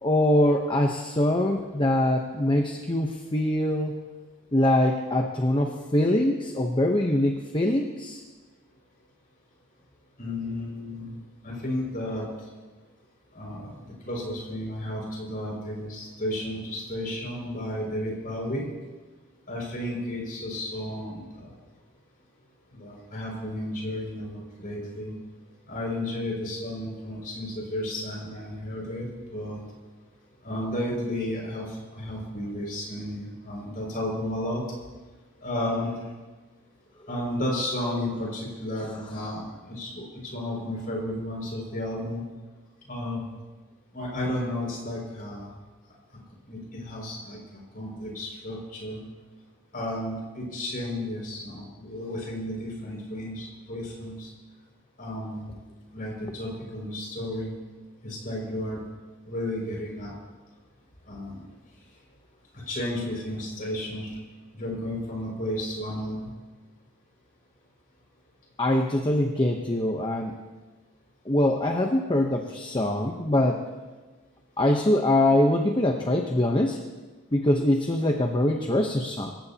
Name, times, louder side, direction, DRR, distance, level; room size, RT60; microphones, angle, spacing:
voice 1, 0.0-4.0 4.5-8.2 38.8-39.1 68.6-70.4 71.3-73.6 74.6-76.8 77.3-79.3, left 1 dB, 25° left, 2 dB, 0.9 m, -23 dB
voice 2, 10.2-11.2 11.4-12.3 13.3-18.6 19.5-21.5 22.7-25.1 25.7-29.1 29.3-29.6 30.4-31.7 31.9-34.6 35.4-35.9 37.1-42.2 42.9-43.2 43.9-45.5 46.5-49.0 49.7-54.3 55.0-55.5 55.9-57.5 58.0-58.8 59.3-60.2 61.1-61.5 62.5-64.1 64.5-66.3, left 1 dB, 45° left, -2 dB, 6.0 m, -33 dB
26.0 x 15.0 x 2.9 m, 1.3 s
head